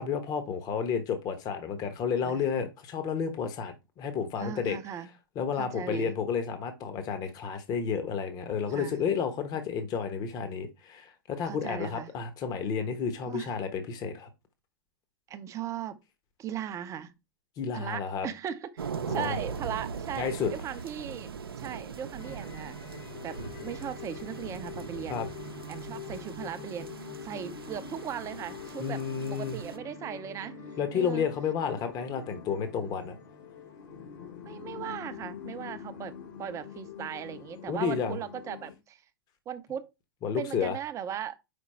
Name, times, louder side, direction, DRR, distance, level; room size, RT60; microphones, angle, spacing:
voice 1, 0.0-4.8 5.4-14.3 17.6-18.3 19.1-19.4 20.2-20.5 25.1-25.3 28.8-29.6 30.8-33.1 37.7-38.2 40.2-40.8, left 6 dB, 30° left, 1.0 m, -31 dB
voice 2, 4.4-5.1 5.6-6.1 8.7-9.0 11.4-12.1 13.2-13.5 15.3-16.0 16.4-17.1 17.7-21.3 21.6-25.2 25.7-30.6 30.9-31.3 34.4-39.0 39.5-39.9 40.4-41.4, right 9 dB, 25° right, 0.6 m, -38 dB
sound 1, 18.8-29.8, right 6 dB, 80° right, 0.6 m, -41 dB
sound 2, 22.2-38.7, left 5 dB, 55° left, 1.4 m, -44 dB
5.2 x 4.5 x 4.2 m
figure-of-eight pair, 100°, 12 cm